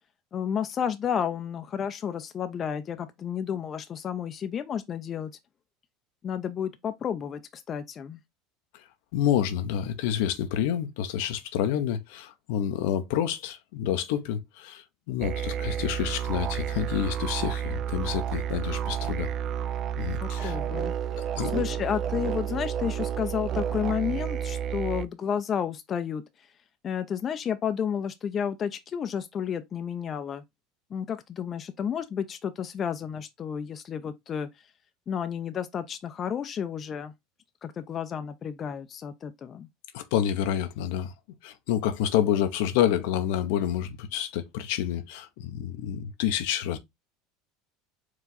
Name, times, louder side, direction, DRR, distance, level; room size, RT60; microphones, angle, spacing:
voice 1, 0.3-5.3 6.2-8.2 20.2-21.0 21.5-26.2 26.8-30.4 30.9-34.5 35.1-37.1 37.6-39.7, left 8 dB, 35° left, 0.5 m, -31 dB
voice 2, 9.1-19.3 20.0-20.6 21.4-21.7 39.9-41.1 41.4-46.8, left 10 dB, 75° left, 0.7 m, -28 dB
sound 1, 15.2-25.1, right 9 dB, 45° right, 0.4 m, -31 dB
4.6 x 2.4 x 3.9 m
supercardioid pair, 105°, 0 cm